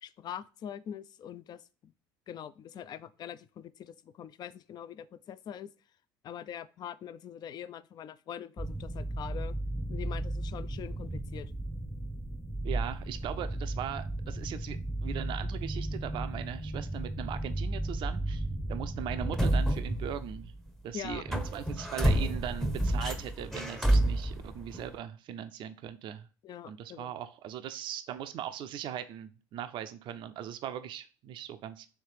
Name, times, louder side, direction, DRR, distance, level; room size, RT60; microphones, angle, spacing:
voice 1, 0.0-1.9 2.3-5.7 6.2-9.6 9.9-11.5 20.9-21.2 26.4-27.1, left 9 dB, 45° left, 16 dB, 0.4 m, -43 dB
sound 1, 8.6-20.7 21.0-25.0, right 1 dB, 5° left, 0.7 m, -32 dB
voice 2, 12.6-20.5 20.8-26.3 26.6-31.9, right 10 dB, 55° right, 10 dB, 0.4 m, -39 dB
3.3 x 3.2 x 4.6 m, 0.36 s
hypercardioid pair, 75°, 10 cm